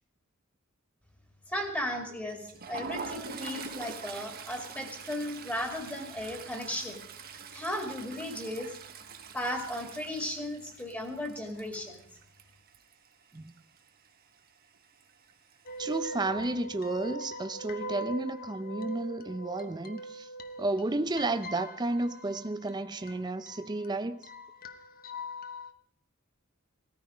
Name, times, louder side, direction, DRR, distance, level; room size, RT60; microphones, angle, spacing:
voice 1, 1.5-7.0 7.5-8.7 9.3-12.0, left 1 dB, 10° left, 2.2 m, -36 dB
Toilet flush, 2.3-13.1 13.4-13.6 13.9-14.1 15.0-15.5, right 5 dB, 45° right, 1.2 m, -44 dB
sound 1, 15.7-25.7, right 1 dB, 45° left, 1.1 m, -42 dB
voice 2, 15.8-20.3 20.6-24.2, right 2 dB, 20° right, 0.5 m, -32 dB
17.5 x 14.0 x 5.0 m
head